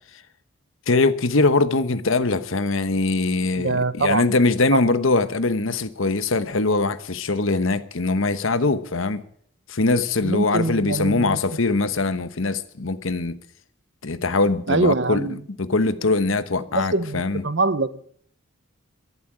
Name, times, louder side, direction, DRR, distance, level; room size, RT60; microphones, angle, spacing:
voice 1, 0.9-9.2 9.7-13.4 14.0-15.3 15.6-17.4, left 3 dB, 70° left, 1.1 m, -22 dB
voice 2, 3.6-4.3 10.2-11.4 14.7-15.4 16.7-18.0, right 3 dB, 55° right, 0.8 m, -24 dB
14.0 x 11.5 x 8.5 m
head